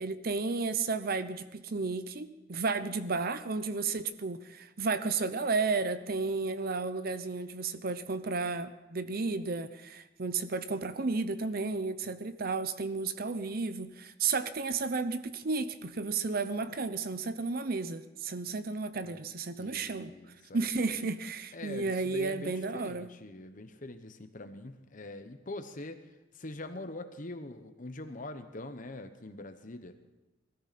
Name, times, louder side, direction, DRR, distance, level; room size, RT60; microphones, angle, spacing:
voice 1, 0.0-20.1 20.5-23.1, right 4 dB, 50° right, 12 dB, 0.7 m, -33 dB
voice 2, 19.6-20.6 20.8-21.1 21.5-26.0 26.3-30.0, left 2 dB, 45° left, 9 dB, 1.1 m, -43 dB
19.0 x 13.5 x 4.2 m, 1.0 s
head